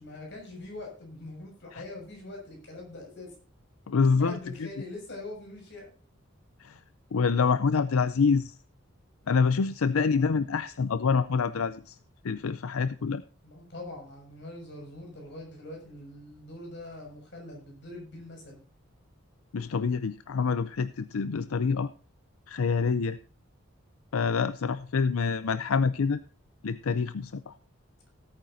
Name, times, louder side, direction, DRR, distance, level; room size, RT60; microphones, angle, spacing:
voice 1, 0.0-3.3 4.2-5.9 10.0-10.4 13.4-18.6, left 2 dB, 55° left, 0 dB, 6.5 m, -43 dB
voice 2, 3.9-4.7 6.6-6.8 7.1-8.5 9.3-12.0 12.2-13.2 19.5-21.9 22.5-23.2 24.1-26.2 26.6-27.5, left 5 dB, 85° left, 14 dB, 0.5 m, -26 dB
18.0 x 9.1 x 2.7 m, 0.38 s
head